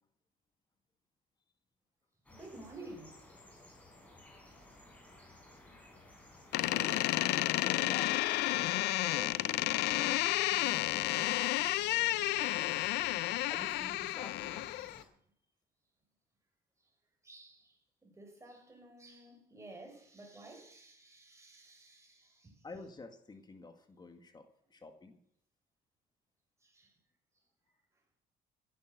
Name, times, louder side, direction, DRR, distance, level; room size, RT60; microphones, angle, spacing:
sound 1, 2.2-15.1, left 1 dB, 10° left, 5.2 m, -56 dB
voice 1, 2.3-3.2 6.6-7.0 7.3-7.5 10.5-11.6 17.2-22.6 26.6-26.9, right 2 dB, 15° right, 5.7 m, -52 dB
Door, 6.5-15.0, left 17 dB, 85° left, 0.6 m, -31 dB
voice 2, 7.6-9.7 13.0-14.7 22.6-25.2, left 3 dB, 25° left, 1.9 m, -49 dB
15.0 x 10.5 x 6.7 m
cardioid pair, 110°, 17 cm